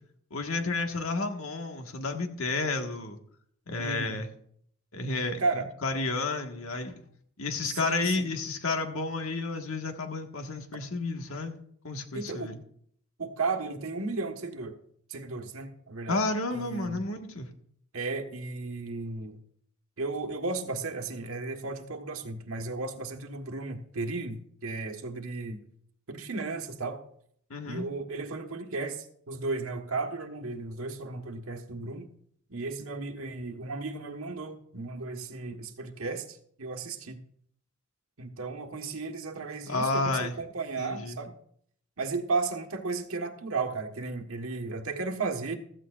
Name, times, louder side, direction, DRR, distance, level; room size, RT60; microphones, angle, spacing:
voice 1, 0.3-3.2 3.7-4.3 4.9-5.4 5.8-6.9 7.4-11.6 11.8-12.6 16.1-17.5 27.5-27.9 39.7-40.4 40.8-41.2, left 3 dB, 80° left, 4 dB, 1.6 m, -31 dB
voice 2, 3.8-4.2 5.4-5.7 7.6-8.3 12.1-12.5 13.2-14.8 15.1-16.2 16.5-17.1 17.9-19.4 20.0-25.6 26.1-27.0 27.6-32.1 32.5-37.2 38.2-41.3 42.0-45.6, right 3 dB, 85° right, 5 dB, 1.4 m, -34 dB
15.5 x 14.0 x 2.5 m, 0.66 s
head